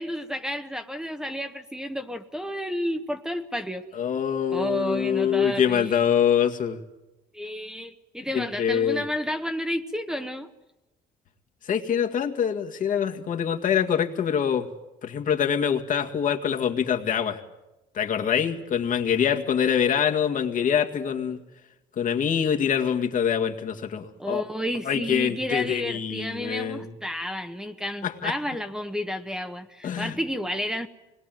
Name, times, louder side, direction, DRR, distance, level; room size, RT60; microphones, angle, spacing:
voice 1, 0.0-3.8 4.5-6.0 7.3-10.5 24.2-30.9, equal, 5° right, 1.3 m, -31 dB
voice 2, 3.9-6.8 8.3-9.0 11.7-14.7 15.0-17.4 17.9-21.4 22.0-24.4 24.9-26.9 28.0-28.3 29.8-30.2, left 8 dB, 50° left, 2.0 m, -25 dB
25.5 x 21.0 x 9.2 m
cardioid pair, 110°, 17 cm